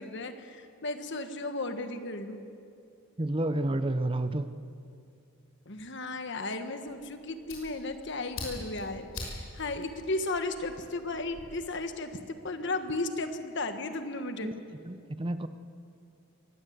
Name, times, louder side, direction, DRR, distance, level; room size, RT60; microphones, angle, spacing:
voice 1, 0.0-2.5 5.7-12.1 12.4-14.5, left 2 dB, 55° left, 8 dB, 1.5 m, -35 dB
voice 2, 3.2-4.5 14.4-14.5 14.8-15.5, right 1 dB, 25° right, 11 dB, 0.7 m, -30 dB
Fire, 6.9-11.4, left 2 dB, 85° left, 6.2 m, -44 dB
23.0 x 17.0 x 8.1 m, 2.4 s
head